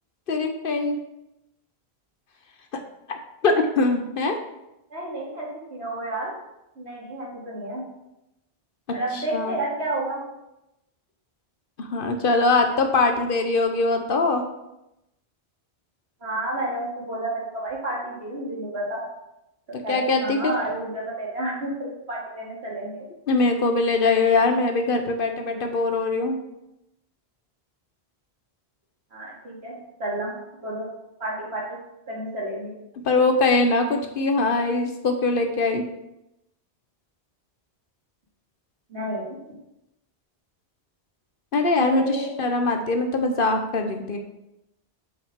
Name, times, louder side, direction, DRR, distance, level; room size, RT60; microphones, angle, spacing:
voice 1, 0.3-1.0 3.1-3.2 3.4-4.4 9.1-9.6 11.8-14.4 19.9-20.5 23.3-26.4 33.0-35.8 41.5-44.2, left 3 dB, 60° left, 5 dB, 1.0 m, -22 dB
voice 2, 4.9-6.3 6.8-7.8 8.9-10.2 12.4-12.6 16.2-19.0 19.7-23.1 25.2-25.6 29.1-29.7 30.0-30.3 30.6-30.9 31.2-31.8 32.1-32.8 38.9-39.4 41.8-42.3, right 1 dB, 85° right, -4 dB, 2.4 m, -31 dB
7.8 x 5.8 x 3.6 m, 0.88 s
omnidirectional pair, 1.1 m